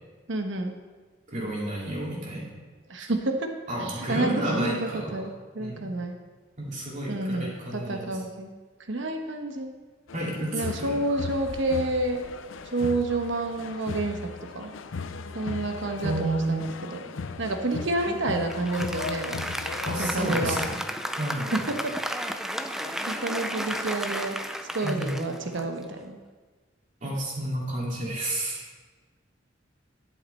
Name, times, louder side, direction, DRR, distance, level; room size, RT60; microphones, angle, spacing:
voice 1, 0.3-0.8 2.9-3.5 3.8-6.2 7.1-8.5 8.9-9.7 10.5-12.3 12.7-14.7 15.3-17.0 17.4-19.5 20.0-20.6 21.5-21.9 23.1-24.4 24.7-26.2, right 2 dB, 70° right, 5 dB, 1.1 m, -29 dB
voice 2, 1.3-2.5 3.7-5.2 5.6-5.9 6.6-8.2 10.1-11.0 16.0-16.6 18.0-18.2 19.8-20.8 21.2-21.6 24.8-25.1 27.0-28.6, right 1 dB, 40° right, -4 dB, 2.6 m, -31 dB
sound 1, 10.1-20.8, left 4 dB, 80° left, 0.5 m, -37 dB
Applause, 18.5-26.1, equal, ahead, 0.5 m, -33 dB
11.0 x 8.6 x 4.2 m, 1.4 s
head